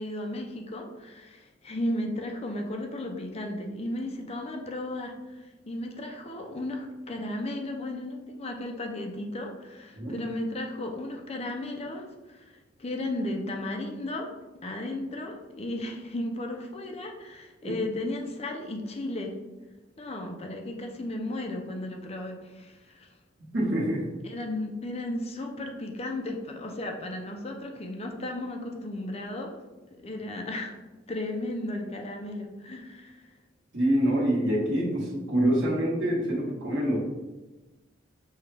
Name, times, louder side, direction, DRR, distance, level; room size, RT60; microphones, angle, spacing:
voice 1, 0.0-14.3 14.6-19.3 20.0-23.1 24.2-29.6 30.0-30.7 31.1-33.3, left 1 dB, 35° left, 2 dB, 0.5 m, -35 dB
voice 2, 23.5-24.0 33.7-37.0, right 1 dB, 85° right, -4 dB, 1.4 m, -25 dB
5.5 x 2.3 x 3.3 m, 1.1 s
head